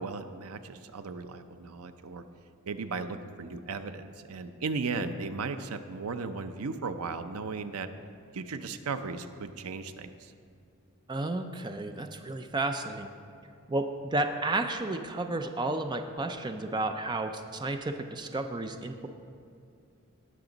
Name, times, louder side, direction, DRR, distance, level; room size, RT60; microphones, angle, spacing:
voice 1, 0.0-2.2 2.7-7.9 8.3-10.3, right 4 dB, 85° right, 9 dB, 0.6 m, -36 dB
voice 2, 11.1-13.1 13.7-19.1, right 2 dB, 20° right, 6 dB, 0.4 m, -32 dB
18.0 x 6.1 x 3.9 m, 2.4 s
head